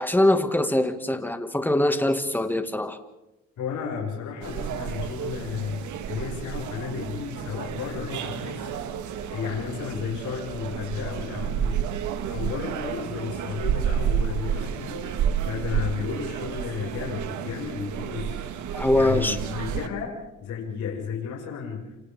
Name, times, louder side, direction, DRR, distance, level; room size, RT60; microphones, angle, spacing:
voice 1, 0.0-3.0 18.7-19.4, left 1 dB, 5° left, 7 dB, 2.0 m, -23 dB
voice 2, 3.6-8.8 9.3-12.0 12.3-15.1 15.4-18.4 18.9-22.0, left 6 dB, 75° left, -1 dB, 6.3 m, -33 dB
sound 1, 4.4-19.9, right 8 dB, 75° right, 1.7 m, -31 dB
29.5 x 27.5 x 3.7 m, 0.98 s
cardioid pair, 90°, 30 cm